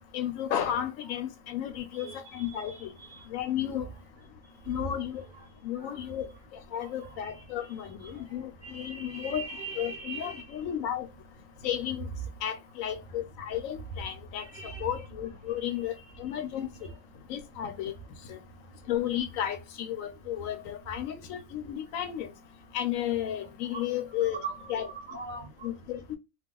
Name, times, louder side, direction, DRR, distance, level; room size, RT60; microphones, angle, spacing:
voice 1, 0.1-2.9 3.3-3.9 4.7-5.2 5.6-9.5 9.8-11.1 11.6-12.1 12.4-16.9 17.3-17.9 18.3-18.4 18.9-22.3 22.7-24.4 24.7-24.9 25.6-26.2, left 10 dB, 80° left, 1.0 m, -33 dB
voice 2, 1.9-2.8 3.1-3.2 5.8-5.9 7.0-7.4 8.6-10.4 14.4-14.9 23.7-23.9 24.4-25.7, right 4 dB, 85° right, 0.4 m, -41 dB
2.3 x 2.3 x 3.5 m
omnidirectional pair, 1.4 m